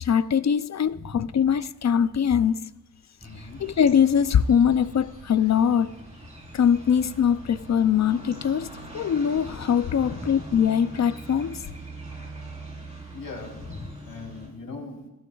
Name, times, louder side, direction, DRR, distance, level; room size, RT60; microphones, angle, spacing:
voice 1, 0.0-2.7 3.6-6.0 6.5-8.7 8.9-11.6, left 8 dB, 55° left, 0.4 m, -22 dB
voice 2, 0.9-1.4 3.2-3.6 9.8-10.5 13.1-15.0, left 3 dB, 85° left, 3.5 m, -39 dB
sound 1, 3.2-14.5, right 2 dB, 20° right, 4.0 m, -42 dB
18.0 x 16.0 x 2.3 m
wide cardioid pair, 130°, 33 cm